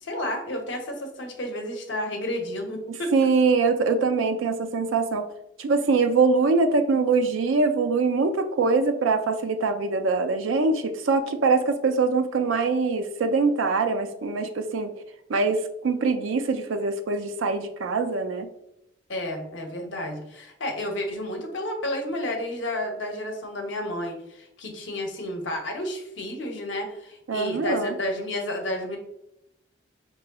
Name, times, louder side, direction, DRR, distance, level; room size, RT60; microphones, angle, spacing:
voice 1, 0.0-3.1 19.1-29.0, left 1 dB, 70° left, 2 dB, 0.8 m, -31 dB
voice 2, 3.1-5.2 5.6-14.9 15.3-18.5 27.3-27.9, right 4 dB, 85° right, 7 dB, 0.4 m, -23 dB
4.8 x 3.0 x 2.2 m, 0.82 s
head